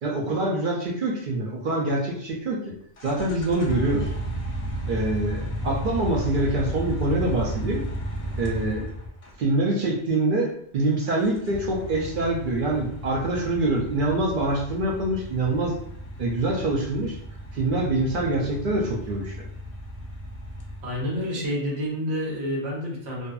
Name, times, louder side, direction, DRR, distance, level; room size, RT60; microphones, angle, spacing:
voice 1, 0.0-2.7 3.0-4.1 4.9-7.8 8.4-8.9 9.4-15.7 16.2-17.2 17.5-19.5, right 2 dB, 60° right, -2 dB, 0.6 m, -25 dB
sound 1, 3.0-9.4 11.1-21.2, equal, 60° left, 0.3 m, -33 dB
voice 2, 20.8-23.3, equal, 85° right, -3 dB, 1.1 m, -29 dB
2.6 x 2.4 x 2.2 m, 0.66 s
omnidirectional pair, 1.2 m